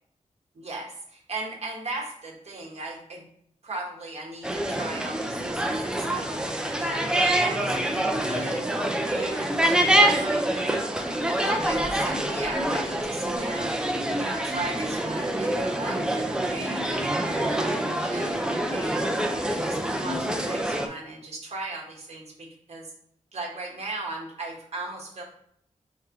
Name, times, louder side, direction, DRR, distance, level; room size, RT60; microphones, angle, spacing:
voice 1, 0.5-3.2 3.6-6.3 6.8-8.6 9.1-13.7 14.1-22.9 23.3-25.2, right 2 dB, 55° right, 0 dB, 1.2 m, -38 dB
sound 1, 4.4-20.9, right 1 dB, 5° right, 0.4 m, -26 dB
3.5 x 3.4 x 4.4 m, 0.69 s
wide cardioid pair, 170°, 13 cm